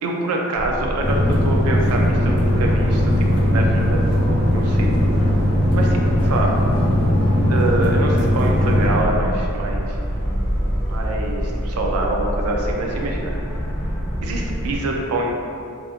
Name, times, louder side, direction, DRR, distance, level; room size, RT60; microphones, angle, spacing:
voice 1, 0.0-4.9 5.1-5.3 5.7-6.5 7.5-10.0 10.9-13.3 14.2-15.3, right 2 dB, 90° right, 0 dB, 0.4 m, -25 dB
sound 1, 0.5-14.8, equal, 5° right, 0.4 m, -26 dB
sound 2, 1.0-9.0, left 1 dB, 50° left, 0.5 m, -19 dB
2.6 x 2.4 x 2.6 m, 2.4 s
head